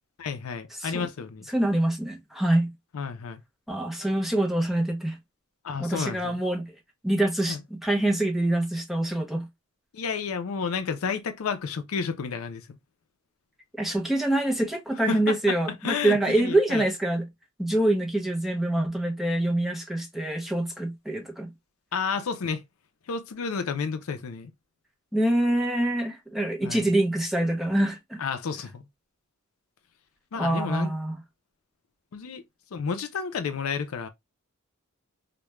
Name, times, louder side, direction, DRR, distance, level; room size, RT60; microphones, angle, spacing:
voice 1, 0.2-1.5 2.9-3.4 5.6-6.4 7.5-7.6 9.9-12.8 15.1-15.6 15.8-16.9 21.9-22.6 23.1-24.5 26.6-26.9 28.2-28.8 30.3-30.9 32.1-32.4 32.7-34.1, left 5 dB, 70° left, 0.4 m, -31 dB
voice 2, 1.5-2.7 3.7-5.2 5.8-6.7 7.0-9.5 13.8-17.3 17.6-21.5 25.1-28.2 30.4-31.1, right 1 dB, ahead, 0.6 m, -25 dB
2.3 x 2.1 x 2.9 m
head